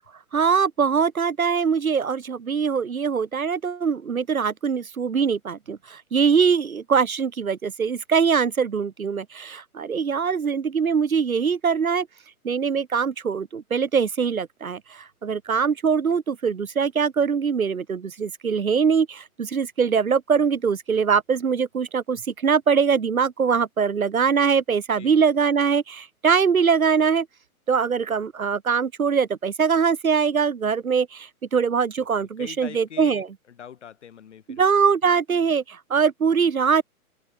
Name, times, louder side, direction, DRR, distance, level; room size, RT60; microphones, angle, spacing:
voice 1, 0.3-12.1 12.4-27.3 27.7-33.3 34.5-36.8, right 6 dB, 70° right, 1.4 m, -22 dB
voice 2, 32.0-34.6, left 8 dB, 50° left, 3.5 m, -43 dB
figure-of-eight pair, 125°, 44 cm